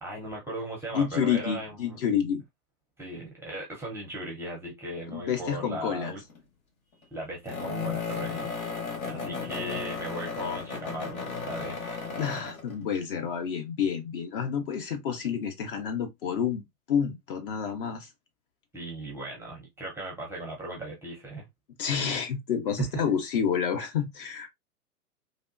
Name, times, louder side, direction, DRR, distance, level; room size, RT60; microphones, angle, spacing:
voice 1, 0.0-1.7 3.0-6.2 7.1-11.8 18.7-21.5 22.8-22.9, right 1 dB, 5° right, 0.6 m, -37 dB
voice 2, 0.9-2.4 5.1-6.1 12.2-16.6 16.9-18.1 21.8-24.5, left 7 dB, 35° left, 0.7 m, -29 dB
sound 1, 6.0-6.4 7.5-12.8, left 5 dB, 65° left, 1.4 m, -34 dB
3.4 x 2.4 x 2.4 m
figure-of-eight pair, 105°, 46 cm